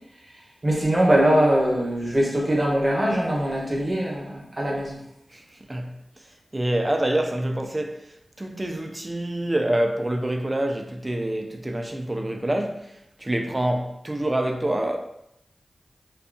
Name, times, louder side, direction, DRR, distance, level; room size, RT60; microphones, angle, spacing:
voice 1, 0.6-5.0, right 1 dB, 45° right, 0.8 m, -22 dB
voice 2, 6.5-8.0 8.4-15.0, right 1 dB, 25° right, 0.4 m, -26 dB
2.6 x 2.3 x 2.5 m
cardioid pair, 45°, 0 cm